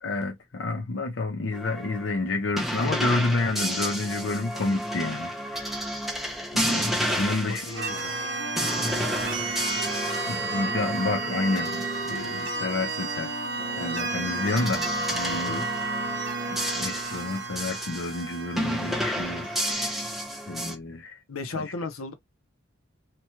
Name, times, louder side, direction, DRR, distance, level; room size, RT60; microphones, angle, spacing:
voice 1, 0.0-5.8 6.5-7.7 10.3-13.3 13.8-14.8 15.1-15.7 16.5-20.0 20.5-21.2 21.5-21.6, left 2 dB, 60° left, 0.6 m, -30 dB
sound 1, 1.5-12.5 13.6-18.2 18.6-20.7, equal, ahead, 0.5 m, -31 dB
voice 2, 7.0-8.1 15.3-15.7 21.3-22.1, left 3 dB, 90° left, 0.8 m, -36 dB
sound 2, 7.5-14.9, left 3 dB, 25° left, 1.0 m, -41 dB
sound 3, 7.8-19.7, right 3 dB, 55° right, 0.6 m, -32 dB
2.9 x 2.3 x 2.9 m
head